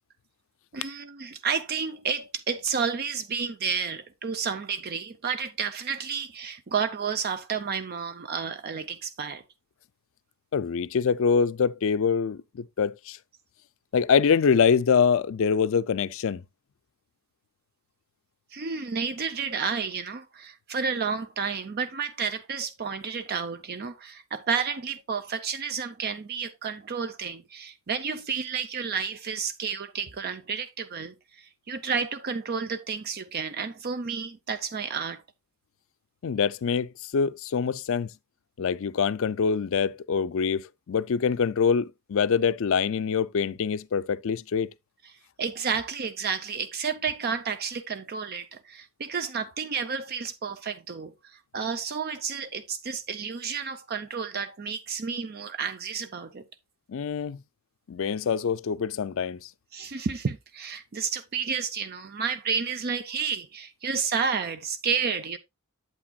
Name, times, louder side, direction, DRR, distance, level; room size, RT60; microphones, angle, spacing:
voice 1, 0.7-9.4 18.5-35.2 45.4-56.4 59.7-65.4, right 6 dB, 45° right, 0.6 m, -31 dB
voice 2, 10.5-13.2 13.9-16.4 36.2-38.1 38.6-44.7 56.9-57.4 57.9-59.5, left 6 dB, 65° left, 0.4 m, -25 dB
8.6 x 8.1 x 2.3 m
head